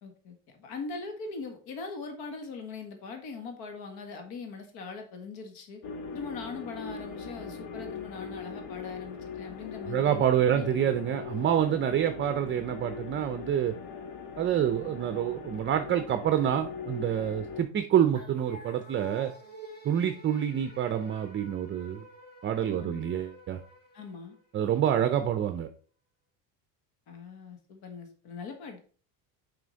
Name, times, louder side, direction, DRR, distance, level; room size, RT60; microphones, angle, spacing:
voice 1, 0.0-5.8 6.1-10.2 10.5-10.7 22.7-23.0 23.9-24.4 27.1-28.8, left 4 dB, 65° left, 4 dB, 1.7 m, -41 dB
sound 1, 5.8-17.6, left 6 dB, 80° left, 1.4 m, -40 dB
voice 2, 9.8-13.7 14.4-19.3 19.8-22.1 22.4-23.6 24.5-25.7, right 10 dB, 30° right, 9 dB, 0.5 m, -27 dB
sound 2, 18.1-24.7, right 1 dB, 25° left, 1.9 m, -49 dB
6.1 x 5.1 x 4.0 m, 0.41 s
cardioid pair, 125°, 41 cm